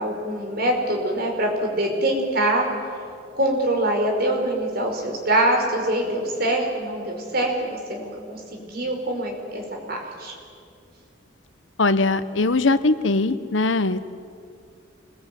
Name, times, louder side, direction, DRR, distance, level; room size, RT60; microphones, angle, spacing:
voice 1, 0.0-2.7 3.3-10.3, right 1 dB, 50° right, 1 dB, 5.1 m, -24 dB
voice 2, 11.8-14.0, left 3 dB, 80° left, 13 dB, 1.1 m, -21 dB
26.5 x 21.5 x 9.3 m, 2.4 s
head